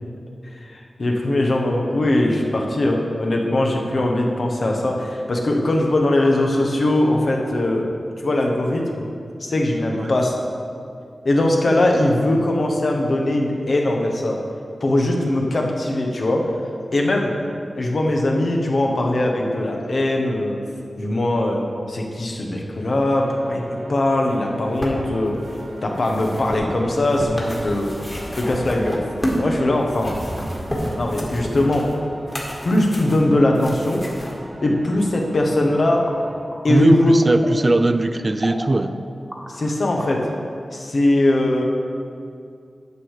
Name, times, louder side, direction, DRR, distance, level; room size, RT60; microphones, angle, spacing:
voice 1, 0.5-7.9 8.2-9.0 9.4-10.3 11.2-14.4 14.8-16.4 16.9-17.3 17.7-20.6 21.0-21.6 21.9-25.3 25.8-27.9 28.3-29.0 29.4-30.2 31.0-31.9 32.6-34.0 34.6-36.0 36.6-37.2 39.5-40.2 40.7-41.6, left 1 dB, 60° left, 0 dB, 1.3 m, -20 dB
sound 1, 23.1-36.4, right 1 dB, 80° right, 2.1 m, -41 dB
sound 2, 24.3-29.5 29.8-34.3 35.1-35.2, equal, 20° left, 1.9 m, -30 dB
sound 3, 36.0-40.8, equal, 10° right, 1.4 m, -37 dB
voice 2, 36.7-38.9, right 2 dB, 40° right, 10 dB, 0.5 m, -19 dB
10.0 x 6.6 x 4.9 m, 2.3 s
wide cardioid pair, 70°, 0 cm